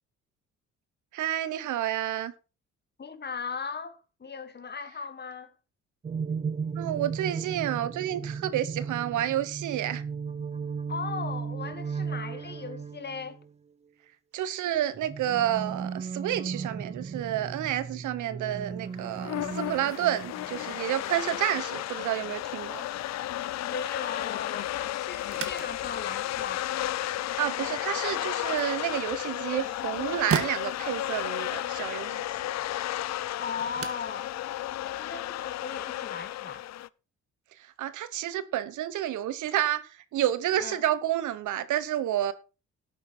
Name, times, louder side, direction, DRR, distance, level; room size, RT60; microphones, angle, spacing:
voice 1, 1.1-2.3 6.8-10.0 14.3-22.9 27.4-32.5 37.8-42.3, right 12 dB, 80° right, 1.1 m, -30 dB
voice 2, 3.0-5.5 10.9-13.4 23.7-26.7 33.4-34.3 34.8-36.6 40.6-40.8, left 5 dB, 35° left, 1.6 m, -38 dB
sound 1, 6.0-13.5 14.8-20.7, right 6 dB, 20° right, 0.5 m, -36 dB
sound 2, 19.0-36.9, left 14 dB, 60° left, 0.5 m, -33 dB
sound 3, 25.2-35.7, right 7 dB, 50° right, 1.8 m, -40 dB
12.5 x 8.7 x 4.4 m
cardioid pair, 90°, 30 cm